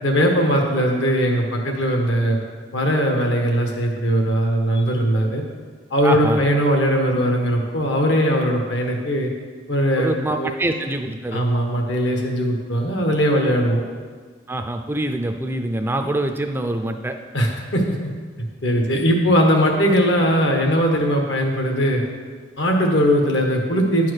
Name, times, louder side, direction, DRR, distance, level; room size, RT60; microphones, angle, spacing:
voice 1, 0.0-2.4 2.7-5.4 5.9-9.3 9.7-10.5 11.3-13.8 17.3-17.9 18.6-22.0 22.6-24.1, equal, 75° left, 2 dB, 1.4 m, -19 dB
voice 2, 6.0-6.4 10.0-11.4 14.5-17.1, right 1 dB, 10° right, 5 dB, 0.4 m, -25 dB
9.9 x 4.5 x 6.5 m, 1.6 s
head